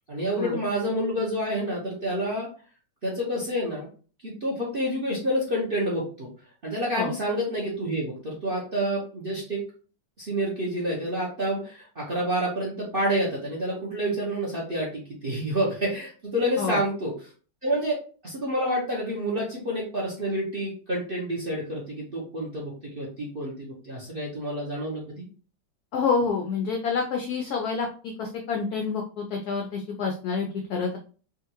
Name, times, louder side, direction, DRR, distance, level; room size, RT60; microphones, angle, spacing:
voice 1, 0.1-2.5 3.0-3.9 4.2-6.3 6.6-9.6 10.2-17.1 17.6-17.9 18.2-25.2, equal, 50° right, -3 dB, 0.6 m, -28 dB
voice 2, 25.9-31.0, left 5 dB, 80° left, 2 dB, 0.8 m, -28 dB
3.7 x 2.5 x 2.8 m, 0.40 s
omnidirectional pair, 2.2 m